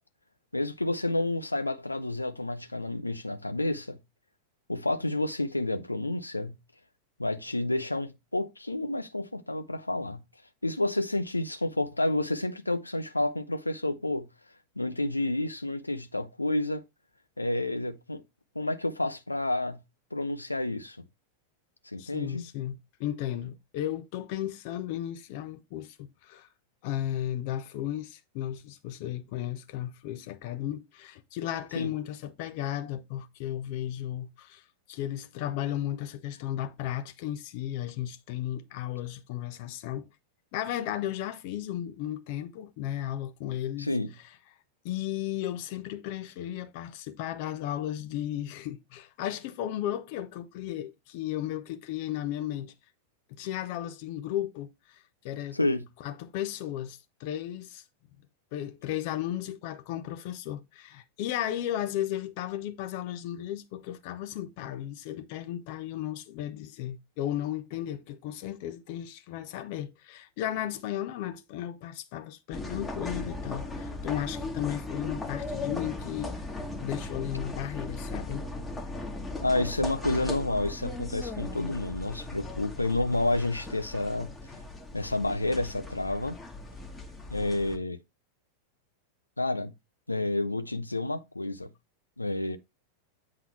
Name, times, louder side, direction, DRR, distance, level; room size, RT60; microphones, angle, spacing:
voice 1, 0.5-4.0 4.7-6.6 7.2-10.2 10.6-14.3 14.8-16.8 17.4-18.2 18.5-19.8 20.1-21.0 21.9-22.4 31.7-31.9 43.8-44.1 55.5-55.9 79.4-84.3 84.9-86.4 87.3-88.0 89.4-89.7 90.1-91.7 92.2-92.6, left 2 dB, 85° left, 0.6 m, -30 dB
voice 2, 22.0-26.5 26.8-34.6 34.9-40.1 40.5-43.9 44.8-52.7 53.3-55.6 56.0-57.8 58.5-76.4 76.8-78.5, left 12 dB, 45° left, 0.8 m, -35 dB
sound 1, 72.5-87.8, left 2 dB, 10° left, 1.4 m, -38 dB
8.5 x 3.8 x 4.4 m
figure-of-eight pair, 90°, 0 cm